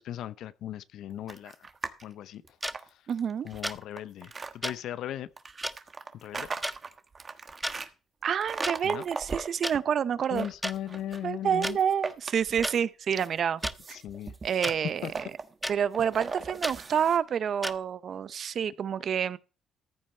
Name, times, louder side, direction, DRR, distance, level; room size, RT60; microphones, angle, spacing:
voice 1, 0.0-1.6 2.0-2.4 3.4-5.3 6.2-6.5 8.8-9.0 10.3-11.8 13.9-14.3 14.6-14.7 15.0-15.1, left 11 dB, 80° left, 0.6 m, -37 dB
sound 1, 1.3-2.0 2.4-4.5 5.4-7.9 8.4-9.8 10.2-11.3 11.6-12.9 13.2-17.2, right 4 dB, 35° right, 1.2 m, -39 dB
sound 2, 2.6-2.7 3.6-3.8 4.6-4.7 5.6-5.7 6.6-6.8 7.5-7.8 8.6-8.7 9.6-9.7 10.6-10.7 11.6-11.7 12.6-12.7 13.6-13.8 14.6-14.8 15.6-15.7 16.6-16.8 17.6-17.7, equal, 5° right, 0.6 m, -32 dB
voice 2, 3.1-3.5 8.2-10.5 11.2-13.6 13.9-14.0 14.4-15.1 15.7-19.4, right 8 dB, 60° right, 0.6 m, -28 dB
14.0 x 7.5 x 4.3 m
cardioid pair, 90°, 0 cm